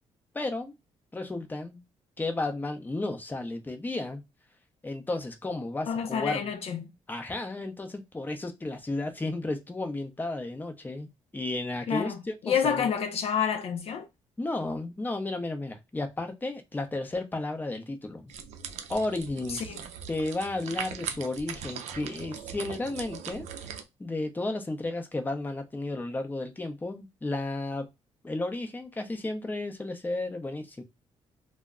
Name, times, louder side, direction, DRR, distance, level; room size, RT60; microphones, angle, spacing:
voice 1, 0.3-0.7 1.1-1.8 2.2-4.2 4.8-6.5 7.1-12.9 14.4-18.3 18.9-19.7 20.1-23.7 24.0-27.9 28.2-30.8, left 2 dB, 15° left, 0.6 m, -33 dB
voice 2, 5.9-6.9 11.9-12.2 12.4-14.1 19.7-19.8, left 7 dB, 60° left, 0.5 m, -28 dB
sound 1, 18.3-23.8, right 7 dB, 80° right, 0.4 m, -40 dB
2.1 x 2.1 x 3.6 m
cardioid pair, 80°, 12 cm